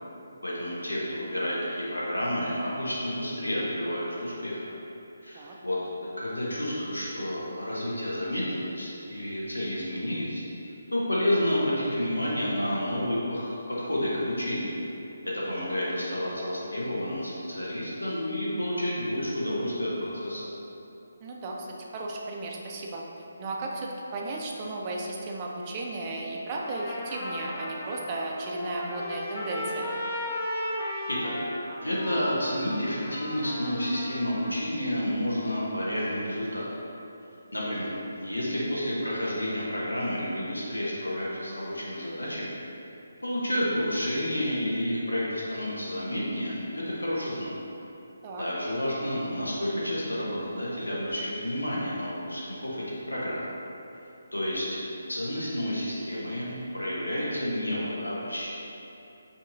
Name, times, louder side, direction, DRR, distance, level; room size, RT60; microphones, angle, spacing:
voice 1, 0.4-4.6 5.2-10.4 10.9-14.7 15.2-20.4 31.1-31.4 31.8-36.6 37.5-42.5 43.2-47.5 48.4-53.5 54.3-58.5, left 1 dB, 80° left, -6 dB, 0.8 m, -30 dB
voice 2, 21.2-21.7 21.9-23.0 23.4-29.9 48.2-48.5, right 2 dB, 25° right, -1 dB, 0.4 m, -35 dB
Trumpet, 26.5-34.5, left 1 dB, 30° left, 0.6 m, -36 dB
5.4 x 2.7 x 2.6 m, 2.8 s
figure-of-eight pair, 145°, 0 cm